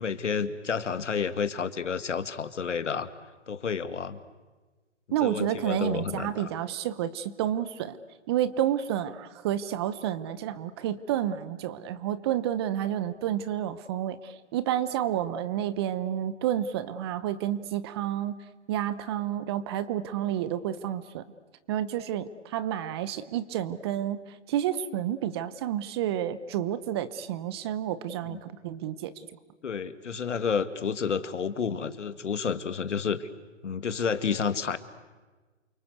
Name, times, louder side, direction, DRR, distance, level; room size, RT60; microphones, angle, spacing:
voice 1, 0.0-3.1 3.5-4.2 5.2-6.5 28.2-28.4 29.6-33.3 33.6-34.8, left 6 dB, 75° left, 12 dB, 2.2 m, -30 dB
voice 2, 5.1-8.0 8.3-18.4 18.7-21.2 21.7-24.2 24.5-29.1, right 11 dB, 20° right, 15 dB, 0.8 m, -30 dB
29.0 x 24.0 x 8.1 m, 1.3 s
hypercardioid pair, 155°, 36 cm